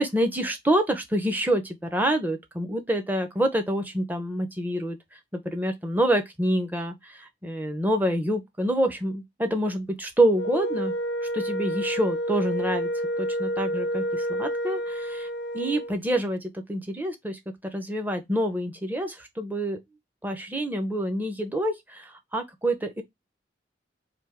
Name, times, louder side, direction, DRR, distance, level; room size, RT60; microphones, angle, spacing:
voice 1, 0.0-5.2 5.4-11.0 11.2-12.9 13.2-15.3 15.5-19.8 20.2-23.0, right 1 dB, 10° right, 0.6 m, -27 dB
Wind instrument woodwind instrument, 10.3-15.9, equal, 65° left, 0.4 m, -29 dB
3.3 x 2.7 x 3.4 m
head